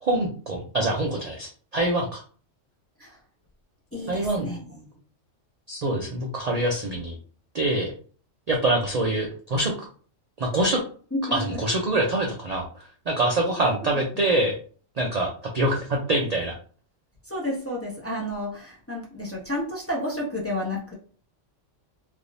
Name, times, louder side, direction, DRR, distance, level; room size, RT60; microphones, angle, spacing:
voice 1, 0.0-2.2 4.1-4.5 5.7-7.2 7.5-7.9 8.5-9.7 10.4-10.8 11.3-12.7 13.1-14.5 15.0-16.6, right 2 dB, 55° right, 0 dB, 0.4 m, -25 dB
voice 2, 3.9-4.9 11.1-11.6 17.3-20.9, left 1 dB, 15° left, -4 dB, 0.6 m, -31 dB
3.3 x 2.7 x 2.6 m, 0.43 s
omnidirectional pair, 1.3 m